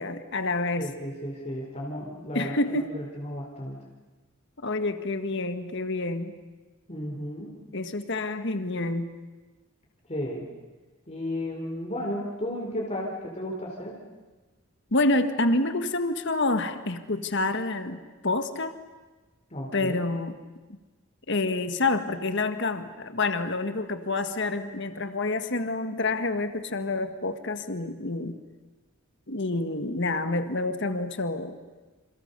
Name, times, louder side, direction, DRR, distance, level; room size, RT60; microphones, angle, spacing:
voice 1, 0.0-0.9 2.3-2.9 4.6-6.4 7.7-9.1 14.9-18.7 19.7-20.3 20.7-20.8 21.3-28.4 29.3-31.6, left 2 dB, 55° left, 9 dB, 1.6 m, -28 dB
voice 2, 0.7-3.8 6.9-7.6 10.1-10.5 11.1-14.0 19.5-20.0, left 1 dB, 30° left, -2 dB, 3.8 m, -34 dB
28.5 x 28.0 x 6.8 m, 1.3 s
head